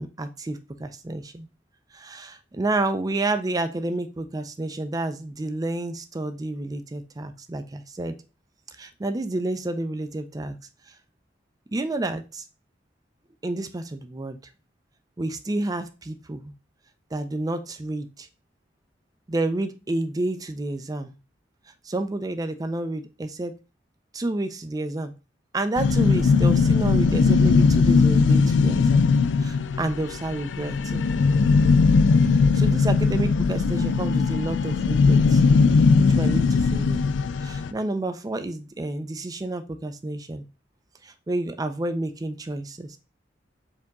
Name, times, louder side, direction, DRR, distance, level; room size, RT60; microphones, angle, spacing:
voice 1, 0.0-1.5 1.9-8.2 8.8-10.6 11.7-12.4 13.4-14.4 15.2-16.5 17.1-18.3 19.3-21.1 21.8-23.5 24.1-25.1 25.5-29.0 29.4-31.1 32.5-35.4 36.0-37.0 37.4-40.5 41.0-43.0, right 2 dB, 20° right, 9 dB, 0.4 m, -30 dB
sound 1, 25.8-37.7, left 4 dB, 85° left, 0.3 m, -19 dB
4.5 x 2.9 x 3.5 m, 0.31 s
head